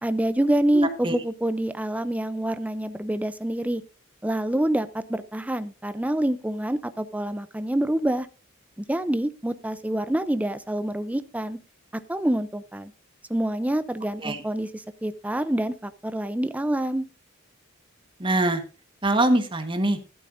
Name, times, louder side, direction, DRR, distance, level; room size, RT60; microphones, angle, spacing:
voice 1, 0.0-3.8 4.2-8.3 8.8-11.6 12.1-12.9 13.3-17.0, right 1 dB, 5° right, 12 dB, 0.5 m, -26 dB
voice 2, 0.7-1.2 14.2-14.4 18.2-18.6 19.0-20.0, right 1 dB, 25° right, 7 dB, 1.3 m, -23 dB
13.5 x 12.0 x 2.6 m, 0.33 s
head